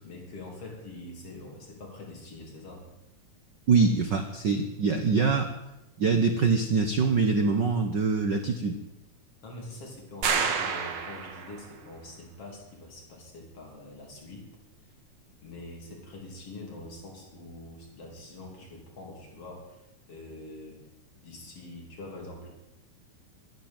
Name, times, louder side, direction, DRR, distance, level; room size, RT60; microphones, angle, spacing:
voice 1, 0.0-2.9 9.4-14.5 15.4-19.8 20.1-20.9 21.2-22.5, left 2 dB, 50° left, 0 dB, 4.0 m, -44 dB
voice 2, 3.7-5.5 6.0-8.8, right 4 dB, 90° right, 7 dB, 0.9 m, -24 dB
sound 1, 10.2-11.7, right 6 dB, 55° right, 1.3 m, -29 dB
12.5 x 11.0 x 8.9 m, 0.91 s
omnidirectional pair, 3.5 m